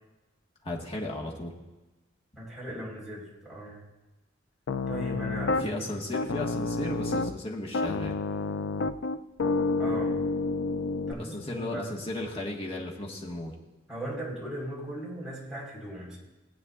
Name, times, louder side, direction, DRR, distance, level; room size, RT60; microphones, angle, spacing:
voice 1, 0.6-1.5 5.5-8.2 11.1-13.5, left 1 dB, 30° left, -2 dB, 1.5 m, -35 dB
voice 2, 2.4-3.8 4.9-5.8 9.8-10.2 11.1-11.8 13.9-16.2, right 1 dB, 5° right, -6 dB, 4.3 m, -38 dB
Piano, 4.7-5.7 6.1-7.4 7.7-11.1, left 3 dB, 65° left, 0.4 m, -29 dB
19.0 x 8.7 x 2.5 m, 1.1 s
head